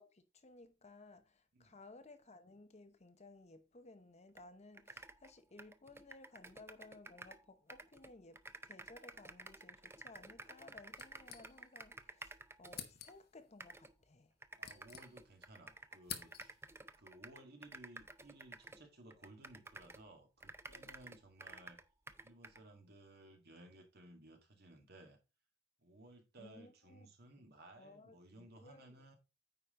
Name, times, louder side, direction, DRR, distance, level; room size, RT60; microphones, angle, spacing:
voice 1, 0.0-12.3 12.6-14.3 26.4-27.1 27.8-28.9, left 2 dB, 35° left, 0.9 m, -58 dB
sound 1, 4.4-4.5 4.7-7.4 7.7-13.2 13.6-13.9 14.4-20.1 20.4-22.6, right 2 dB, 15° right, 0.5 m, -53 dB
sound 2, 10.9-11.9 12.2-12.3 12.7-13.4 14.2-15.5 15.8-16.8, left 9 dB, 55° left, 1.2 m, -50 dB
voice 2, 14.6-16.6 17.0-21.8 22.2-25.2 25.8-29.2, right 1 dB, 55° right, 2.0 m, -59 dB
9.2 x 4.9 x 3.7 m
head